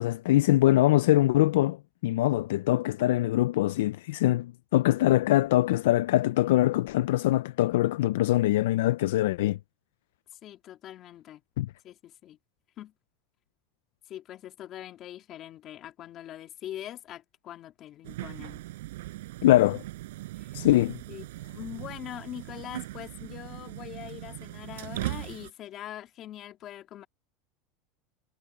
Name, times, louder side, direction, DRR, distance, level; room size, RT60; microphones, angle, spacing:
voice 1, 0.0-1.8 2.0-9.6 11.6-11.7 19.4-19.8 20.5-21.0, left 15 dB, 85° left, 0.4 m, -23 dB
voice 2, 10.4-11.4 11.8-12.4 12.8-12.9 14.1-18.6 20.4-20.6 21.1-21.3 21.5-27.1, left 12 dB, 40° left, 2.9 m, -43 dB
sound 1, 18.0-25.5, right 17 dB, 85° right, 6.9 m, -39 dB
supercardioid pair, 130°, 0 cm